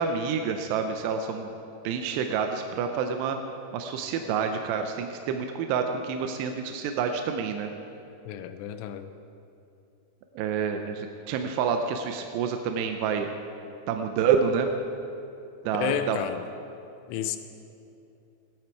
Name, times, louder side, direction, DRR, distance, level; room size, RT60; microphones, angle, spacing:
voice 1, 0.0-1.5 1.8-3.4 3.7-7.7 10.4-13.3 13.9-14.7 15.7-16.2, right 6 dB, 80° right, 5 dB, 2.5 m, -28 dB
voice 2, 8.3-9.1 15.8-16.4 17.1-17.4, left 10 dB, 90° left, 9 dB, 3.2 m, -31 dB
17.0 x 12.0 x 4.7 m, 2.7 s
omnidirectional pair, 5.4 m